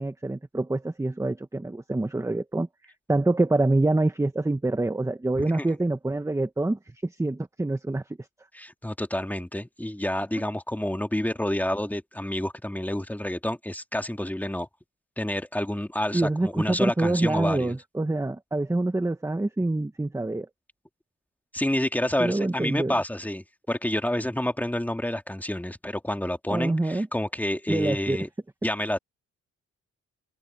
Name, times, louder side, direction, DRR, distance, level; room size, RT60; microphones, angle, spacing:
voice 1, 0.0-2.7 3.1-8.0 16.1-20.5 22.2-22.9 26.5-27.1 27.7-28.2, right 2 dB, 10° right, 1.2 m, -26 dB
voice 2, 8.5-14.7 15.2-17.7 21.5-28.3 28.6-29.0, left 1 dB, 5° left, 2.3 m, -29 dB
cardioid pair, 90°, 30 cm